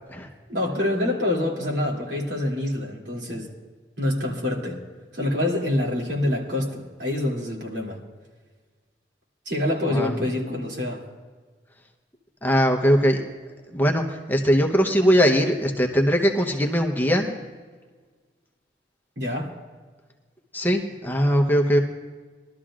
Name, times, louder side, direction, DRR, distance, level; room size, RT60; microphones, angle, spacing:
voice 1, 0.5-3.5 4.0-4.8 5.1-8.0 9.4-11.0 19.2-19.5, left 1 dB, 70° right, -2 dB, 2.7 m, -26 dB
voice 2, 12.4-13.2 13.7-17.4 20.5-21.8, equal, 10° left, 2 dB, 0.8 m, -20 dB
21.5 x 12.5 x 2.5 m, 1.5 s
head